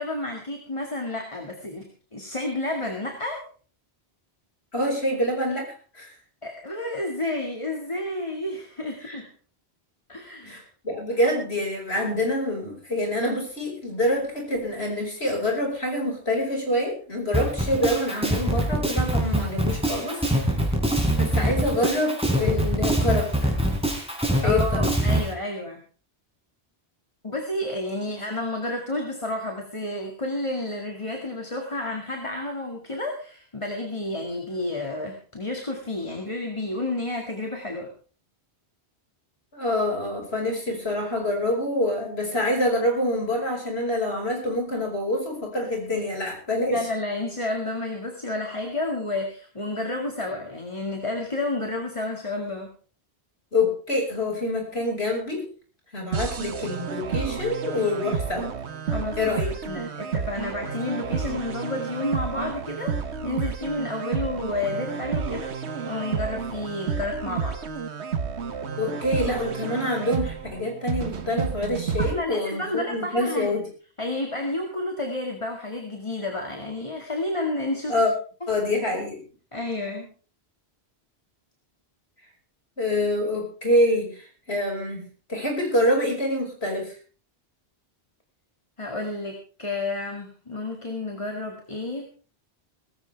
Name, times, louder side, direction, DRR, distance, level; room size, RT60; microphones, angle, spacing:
voice 1, 0.0-3.5 6.4-9.3 10.1-10.6 21.4-21.5 24.4-25.8 27.2-37.9 45.9-46.1 46.7-52.7 58.8-59.2 59.7-65.5 65.9-67.6 72.0-73.5 74.0-77.9 79.5-80.1 88.8-92.1, left 2 dB, 30° left, 2 dB, 2.1 m, -30 dB
voice 2, 4.7-5.7 5.9-6.1 9.0-9.2 10.5-20.5 21.2-23.6 24.4-24.9 39.5-46.8 53.5-55.5 55.9-58.5 59.2-59.5 68.8-73.6 77.9-78.1 78.5-79.2 82.8-85.0 85.3-86.9, left 1 dB, 70° left, 1 dB, 5.5 m, -26 dB
Drum kit, 17.3-25.3, right 1 dB, 5° right, 3.9 m, -23 dB
sound 1, 56.1-72.1, right 6 dB, 90° right, 1.4 m, -31 dB
18.0 x 16.0 x 3.4 m, 0.40 s
omnidirectional pair, 1.1 m